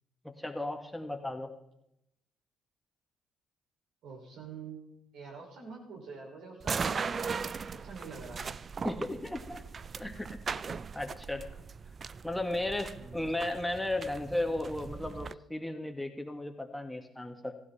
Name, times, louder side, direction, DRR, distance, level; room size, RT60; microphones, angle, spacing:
voice 1, 0.2-1.5 8.8-9.6 10.0-10.3 10.9-11.5 12.2-17.6, left 1 dB, 5° left, 4 dB, 2.1 m, -35 dB
voice 2, 4.0-7.5 7.8-8.4 12.9-13.3, right 5 dB, 70° right, -2 dB, 5.8 m, -46 dB
passing from inside factory to outside, 6.6-15.3, right 5 dB, 45° right, 0.5 m, -38 dB
15.5 x 15.0 x 4.4 m, 0.83 s
hypercardioid pair, 55°, 0 cm